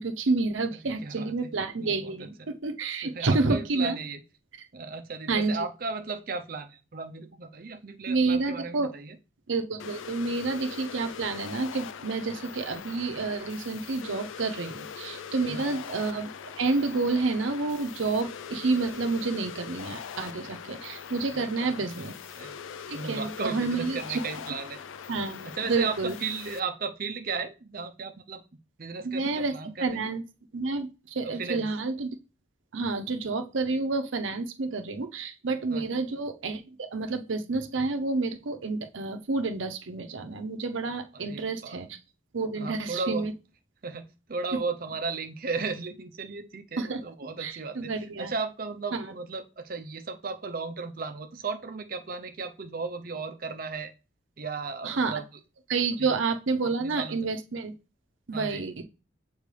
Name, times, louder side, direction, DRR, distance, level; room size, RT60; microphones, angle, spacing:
voice 1, 0.0-4.0 5.3-5.6 8.1-8.9 9.5-16.3 16.6-22.2 22.9-24.2 25.1-26.1 29.0-29.5 29.8-30.2 30.5-32.2 32.7-41.9 42.3-43.3 46.8-47.0 47.4-48.3 48.9-49.0 54.8-55.1 55.7-57.7 58.3-58.8, right 3 dB, 80° right, 7 dB, 0.7 m, -29 dB
voice 2, 0.7-1.5 1.8-2.5 3.0-4.2 4.7-9.1 15.5-15.8 21.3-22.1 22.4-22.5 22.9-24.8 25.4-28.4 28.8-30.0 31.2-31.7 35.7-36.0 41.1-41.8 42.5-43.3 43.8-47.9 48.2-53.9 54.4-55.3 56.0-56.1 56.8-57.2 58.3-58.6, right 4 dB, 45° right, 8 dB, 0.6 m, -35 dB
sound 1, 9.8-26.6, left 7 dB, 85° left, 0.4 m, -42 dB
6.8 x 4.5 x 3.3 m, 0.31 s
head